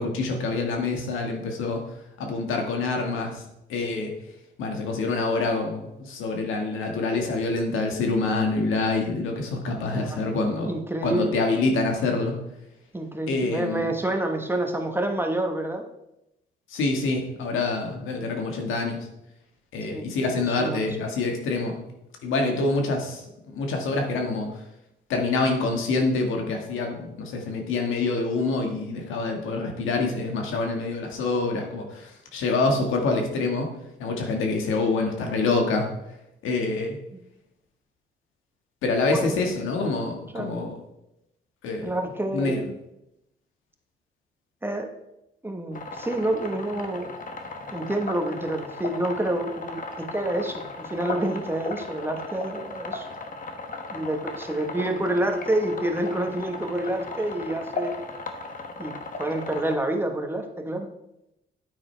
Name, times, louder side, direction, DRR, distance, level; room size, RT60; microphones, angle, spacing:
voice 1, 0.0-1.8 2.2-3.4 3.7-4.1 4.6-12.3 13.3-13.9 16.7-19.1 19.7-21.8 22.2-24.5 25.1-33.7 34.0-35.9 36.4-37.0 38.8-40.7 41.6-41.9 42.3-42.6, left 3 dB, 85° left, 2 dB, 1.8 m, -26 dB
voice 2, 9.9-11.4 12.9-15.8 19.9-20.1 20.4-20.9 34.1-34.2 37.1-37.2 39.1-39.3 40.3-40.6 41.8-42.7 44.6-44.9 45.4-47.1 47.7-53.1 53.9-57.9 58.8-58.9 59.2-60.9, right 1 dB, 10° right, 4 dB, 1.3 m, -28 dB
sound 1, 45.7-59.8, left 3 dB, 45° left, 1.3 m, -37 dB
9.5 x 8.8 x 3.4 m, 0.86 s
cardioid pair, 90°, 20 cm